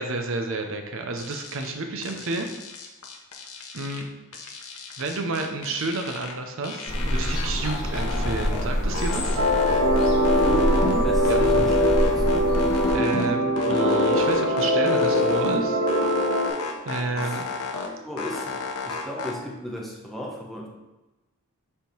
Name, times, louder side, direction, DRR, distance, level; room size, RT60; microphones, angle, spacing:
voice 1, 0.0-2.5 3.7-4.1 5.0-9.4 11.3-11.4 12.9-15.8 16.9-17.4, right 3 dB, 60° right, 5 dB, 0.6 m, -30 dB
sound 1, 1.2-1.7 2.0-4.0 4.3-6.3 6.6-8.6 8.9-11.0 11.2-13.3 13.6-15.6 15.9-17.9 18.2-19.3, left 3 dB, 80° left, 1.0 m, -30 dB
sound 2, 6.9-12.9, equal, 45° left, 1.5 m, -26 dB
sound 3, 9.4-16.5, equal, 85° right, 1.0 m, -22 dB
voice 2, 10.3-10.7 11.0-12.5 17.2-17.4 17.9-20.7, left 1 dB, ahead, -3 dB, 0.8 m, -35 dB
6.9 x 3.6 x 4.5 m, 1.0 s
head